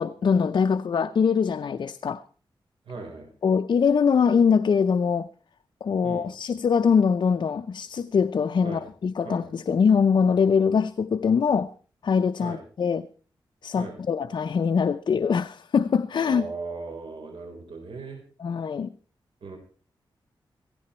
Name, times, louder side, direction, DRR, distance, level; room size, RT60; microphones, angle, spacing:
voice 1, 0.0-2.2 3.4-5.3 5.8-11.7 12.0-13.1 13.6-16.5 18.4-18.9, left 6 dB, 60° left, 0.6 m, -23 dB
voice 2, 2.9-3.3 6.0-6.2 8.6-8.8 9.2-9.4 12.4-12.6 13.7-13.9 16.2-18.2 19.4-19.6, right 4 dB, 80° right, 4.1 m, -37 dB
17.5 x 15.0 x 4.3 m
wide cardioid pair, 145°, 9 cm